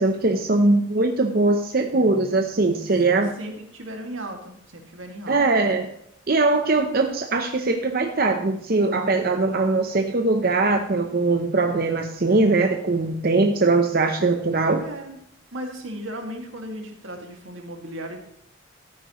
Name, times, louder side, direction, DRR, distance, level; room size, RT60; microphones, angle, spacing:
voice 1, 0.0-3.3 5.3-5.9 6.3-14.8, right 3 dB, 50° right, 4 dB, 0.8 m, -21 dB
voice 2, 1.9-2.4 3.4-5.4 14.8-15.2 15.5-18.2, right 1 dB, 85° right, 3 dB, 2.3 m, -36 dB
13.0 x 9.7 x 3.1 m, 0.73 s
head